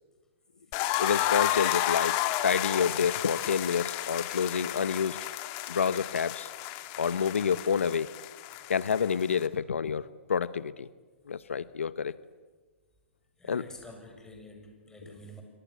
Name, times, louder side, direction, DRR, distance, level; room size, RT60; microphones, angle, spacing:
sound 1, 0.7-9.5, left 14 dB, 40° left, 2.3 m, -32 dB
voice 1, 1.0-5.2 5.7-6.5 7.0-8.1 8.7-10.9 11.3-12.1 13.5-13.6 15.0-15.1, left 6 dB, 90° left, 16 dB, 0.9 m, -28 dB
voice 2, 13.4-15.4, left 1 dB, 10° left, 3 dB, 7.3 m, -48 dB
27.5 x 24.5 x 8.3 m, 1.4 s
hypercardioid pair, 130°, 7 cm